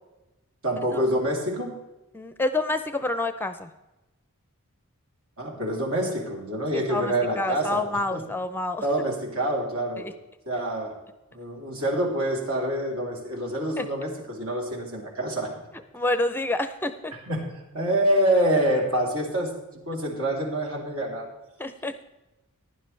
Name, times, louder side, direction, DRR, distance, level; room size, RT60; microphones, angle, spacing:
voice 1, 0.6-1.7 5.4-7.8 8.1-8.2 8.8-10.1 10.5-11.0 11.3-15.7 17.1-19.5 19.9-21.3, right 1 dB, 70° right, -1 dB, 3.3 m, -26 dB
voice 2, 2.1-3.7 6.7-8.8 10.0-10.1 13.8-13.9 15.9-17.1 21.6-21.9, left 2 dB, 10° left, 10 dB, 0.5 m, -28 dB
15.5 x 11.0 x 3.3 m, 1.0 s
head